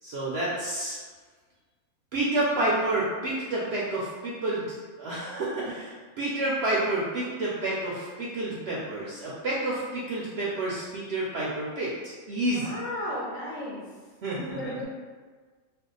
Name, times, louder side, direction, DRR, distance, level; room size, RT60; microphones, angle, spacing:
voice 1, 0.0-1.0 2.1-12.8 14.2-14.8, right 2 dB, 65° right, -6 dB, 0.6 m, -29 dB
voice 2, 12.3-13.8 14.4-14.8, left 1 dB, 60° left, -5 dB, 1.0 m, -35 dB
2.7 x 2.2 x 3.7 m, 1.5 s
omnidirectional pair, 1.5 m